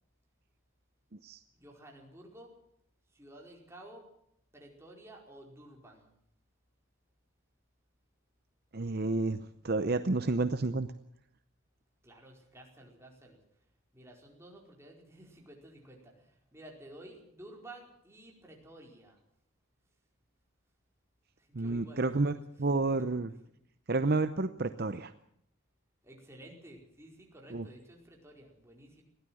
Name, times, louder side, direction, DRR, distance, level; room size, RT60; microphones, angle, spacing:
voice 1, 1.5-2.5 3.1-4.1 4.5-6.1 12.0-13.4 13.9-19.2 21.4-23.2 26.0-29.0, right 1 dB, 10° right, 0 dB, 4.7 m, -53 dB
voice 2, 8.7-10.9 21.5-23.3 23.9-25.1 27.5-27.7, right 3 dB, 45° right, 11 dB, 0.7 m, -30 dB
21.5 x 16.0 x 7.7 m, 0.72 s
head